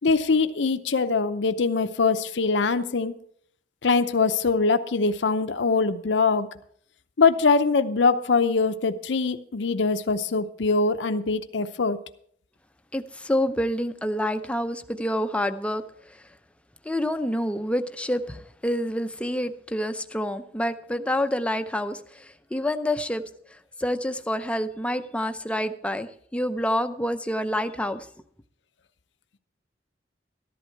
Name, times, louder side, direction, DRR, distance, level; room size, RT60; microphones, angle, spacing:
voice 1, 0.0-3.1 3.8-6.5 7.2-12.0, left 4 dB, 80° left, 10 dB, 0.7 m, -23 dB
voice 2, 12.9-16.2 16.8-23.2 23.8-28.1, left 1 dB, 5° left, 9 dB, 0.6 m, -28 dB
13.5 x 11.0 x 4.6 m, 0.62 s
head